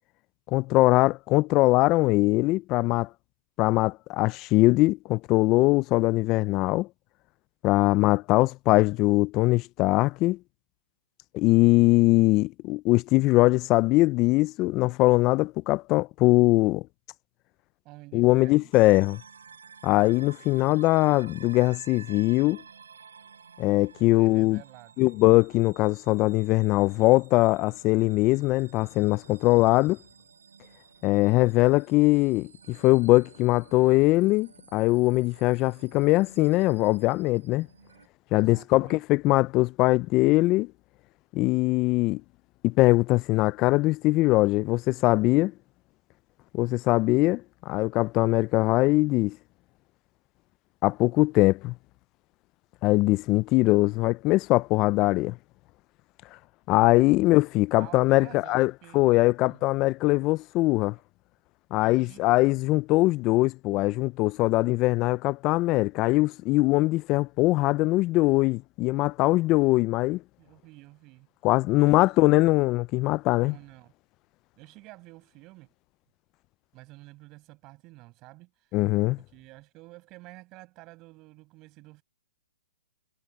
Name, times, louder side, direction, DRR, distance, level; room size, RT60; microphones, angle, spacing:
voice 1, 0.5-3.1 3.6-6.9 7.6-10.4 11.3-16.8 18.1-19.2 19.8-22.6 23.6-24.6 25.0-30.0 31.0-37.7 38.3-40.7 41.3-42.2 42.6-45.5 46.5-49.4 50.8-51.7 52.8-55.4 56.7-61.0 61.7-70.2 71.4-73.5 78.7-79.2, left 20 dB, 30° left, 0.4 m, -22 dB
voice 2, 17.8-18.7 24.1-25.1 38.3-39.0 57.8-59.1 59.4-59.6 61.8-62.2 70.4-71.3 71.8-71.9 72.2-72.6 73.4-73.9 74.6-75.7 76.7-78.8 79.3-82.0, right 21 dB, 30° right, 7.1 m, -49 dB
sound 1, 18.7-38.1, right 6 dB, 85° right, 7.2 m, -52 dB
hypercardioid pair, 145°, 0 cm